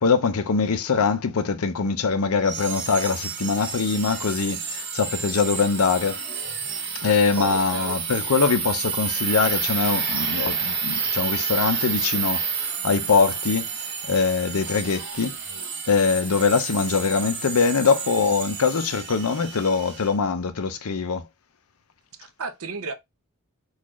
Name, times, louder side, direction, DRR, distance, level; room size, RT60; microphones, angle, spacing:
voice 1, 0.0-6.2 7.0-15.4 15.9-21.2, left 5 dB, 75° left, 0.6 m, -23 dB
sound 1, 2.4-20.1, right 6 dB, 50° right, 1.6 m, -30 dB
voice 2, 7.3-8.0 22.2-22.9, right 3 dB, 75° right, 0.8 m, -32 dB
3.9 x 2.5 x 3.0 m
head